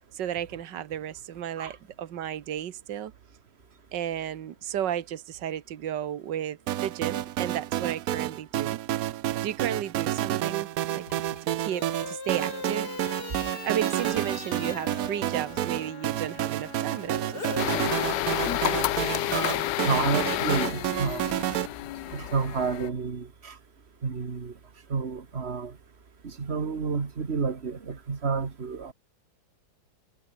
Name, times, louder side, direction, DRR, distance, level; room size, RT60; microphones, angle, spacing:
voice 1, 0.1-3.1 3.9-8.8 9.4-11.1 11.4-12.9 13.6-17.3 17.7-18.1, right 10 dB, 80° right, 1.8 m, -33 dB
sound 1, 6.7-21.7, right 13 dB, 65° right, 1.0 m, -30 dB
sound 2, 11.0-17.6 17.9-20.2, left 3 dB, 65° left, 4.3 m, -40 dB
sound 3, 17.6-22.9, left 15 dB, 80° left, 1.3 m, -30 dB
voice 2, 19.8-21.3 22.1-23.6 24.0-24.5 24.9-25.7 26.2-28.9, right 5 dB, 35° right, 2.0 m, -30 dB
omnidirectional pair, 1.9 m